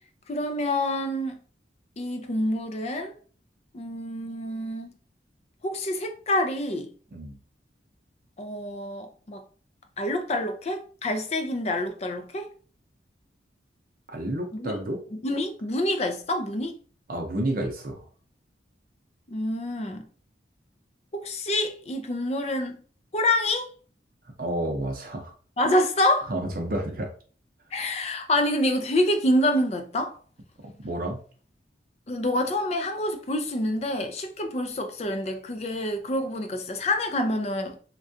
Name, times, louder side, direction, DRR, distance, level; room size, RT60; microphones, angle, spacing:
voice 1, 0.3-1.4 2.0-3.1 3.7-5.0 5.6-6.9 8.4-9.4 10.0-12.5 14.5-14.7 15.1-16.8 19.3-20.1 21.1-22.8 23.1-23.7 25.6-26.3 27.7-30.2 32.1-37.8, left 1 dB, 35° left, 0.4 m, -27 dB
voice 2, 14.1-15.0 17.1-18.0 24.4-25.3 26.3-27.1 30.8-31.2, right 1 dB, 50° right, 0.6 m, -30 dB
3.6 x 2.3 x 2.6 m
head